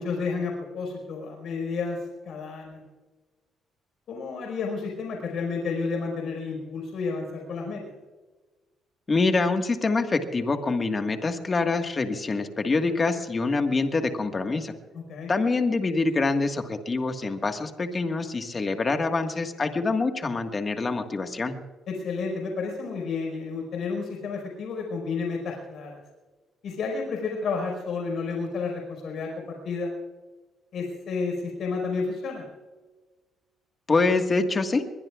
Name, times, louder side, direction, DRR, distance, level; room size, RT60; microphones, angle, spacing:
voice 1, 0.0-2.0 2.2-2.8 4.1-7.8 14.9-15.3 21.9-26.0 26.6-29.9 30.7-32.4, left 4 dB, 65° left, 1 dB, 5.0 m, -31 dB
voice 2, 9.1-14.7 15.3-21.6 33.9-34.8, left 3 dB, 30° left, 6 dB, 1.7 m, -25 dB
23.0 x 21.5 x 2.4 m, 1.3 s
cardioid pair, 90°, 0 cm